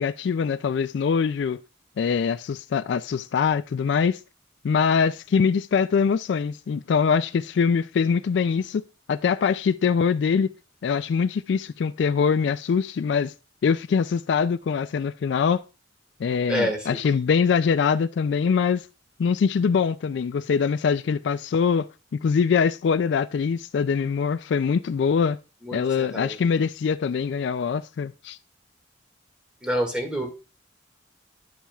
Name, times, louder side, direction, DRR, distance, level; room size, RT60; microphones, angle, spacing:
voice 1, 0.0-1.6 2.0-4.2 4.6-8.8 9.1-10.5 10.8-13.3 13.6-15.6 16.2-18.9 19.2-21.9 22.2-25.4 25.7-28.4, left 6 dB, 65° left, 0.3 m, -23 dB
voice 2, 16.5-17.0 25.6-26.4 29.6-30.3, equal, 5° right, 1.9 m, -27 dB
10.5 x 7.2 x 2.3 m
head